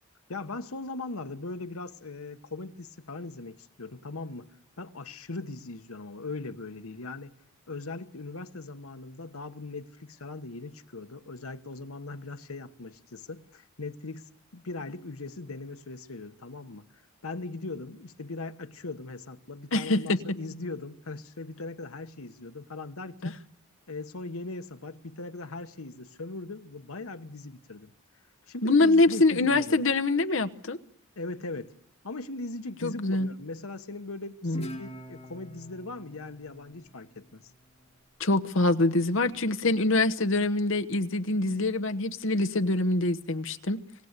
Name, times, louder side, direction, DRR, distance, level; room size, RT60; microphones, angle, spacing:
voice 1, 0.3-4.5 4.8-7.3 7.7-16.8 17.2-23.4 23.9-27.9 28.5-29.8 31.2-31.7 32.0-37.4, left 3 dB, 90° left, 1.2 m, -39 dB
voice 2, 19.7-20.2 23.2-23.3 28.6-30.8 32.8-33.3 34.4-34.6 38.2-43.8, left 2 dB, 65° left, 1.1 m, -24 dB
Guitar, 34.5-37.8, equal, 25° left, 3.1 m, -45 dB
26.5 x 17.5 x 8.2 m
head